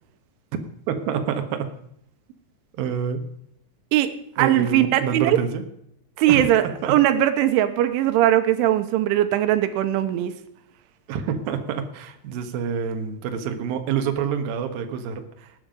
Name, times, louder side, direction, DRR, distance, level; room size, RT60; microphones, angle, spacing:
voice 1, 0.9-1.7 2.8-3.2 4.4-5.6 6.3-7.0 11.1-15.5, right 7 dB, 65° right, 5 dB, 2.7 m, -27 dB
voice 2, 3.9-5.4 6.2-10.3, right 12 dB, 90° right, 9 dB, 3.4 m, -20 dB
18.5 x 8.9 x 5.2 m, 0.72 s
omnidirectional pair, 5.5 m